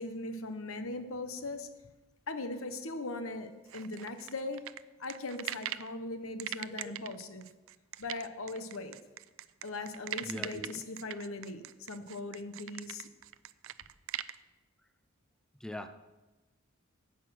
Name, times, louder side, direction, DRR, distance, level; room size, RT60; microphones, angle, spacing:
voice 1, 0.0-1.7 2.3-4.6 5.0-7.5 8.0-8.9 9.6-13.1, left 2 dB, 75° left, 1.0 m, -39 dB
sound 1, 3.7-5.9 6.4-14.4, right 13 dB, 65° right, 0.4 m, -41 dB
voice 2, 10.2-10.8 15.6-15.9, left 1 dB, 5° left, 0.4 m, -41 dB
10.5 x 8.1 x 6.3 m
head